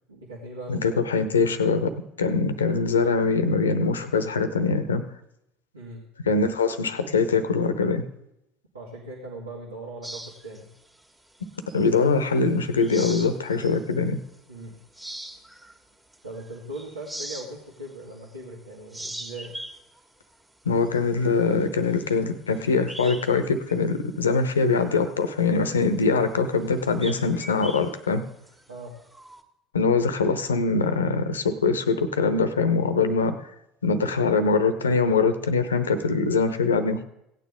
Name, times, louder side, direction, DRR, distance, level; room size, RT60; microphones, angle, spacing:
voice 1, 0.1-0.8 5.7-6.0 8.7-10.7 14.5-14.8 16.2-19.6 28.7-28.9, right 1 dB, 85° right, -5 dB, 2.1 m, -39 dB
voice 2, 0.7-1.9 2.2-5.0 6.3-8.0 11.7-14.2 20.7-28.2 29.7-33.3 33.8-37.0, left 4 dB, 80° left, 11 dB, 0.8 m, -23 dB
sound 1, 10.0-12.2 12.6-13.9 14.3-14.5 14.9-18.5 18.8-23.4 23.7-23.8 24.3-29.4, right 1 dB, 15° right, 1.7 m, -42 dB
16.5 x 9.2 x 3.6 m, 0.82 s
figure-of-eight pair, 65°, 0 cm